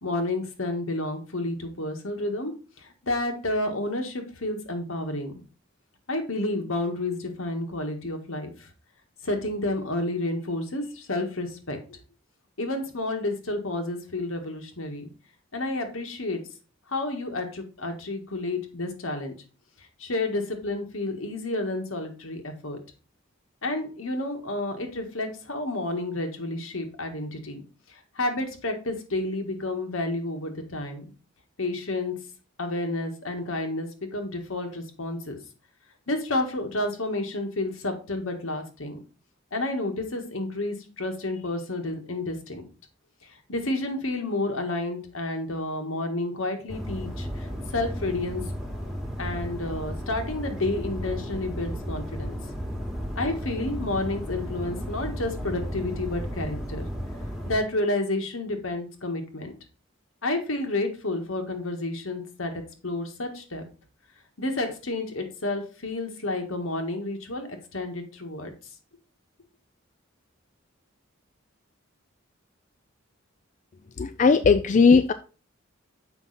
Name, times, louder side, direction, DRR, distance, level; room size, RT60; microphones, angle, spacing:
voice 1, 0.0-2.5 2.8-5.3 6.1-8.7 9.2-12.0 12.6-15.1 15.5-16.4 16.9-19.3 20.0-22.8 23.6-27.6 27.9-31.0 31.6-32.1 32.6-35.4 36.1-39.0 39.5-42.7 43.2-48.4 49.2-52.3 53.1-56.9 57.5-59.5 60.2-62.5 62.8-63.6 64.4-68.5, left 2 dB, 80° left, 4 dB, 1.6 m, -30 dB
sound 1, 46.7-57.6, equal, ahead, 1.4 m, -34 dB
voice 2, 74.0-75.1, left 5 dB, 35° left, 11 dB, 0.3 m, -18 dB
7.2 x 5.3 x 4.1 m, 0.35 s
head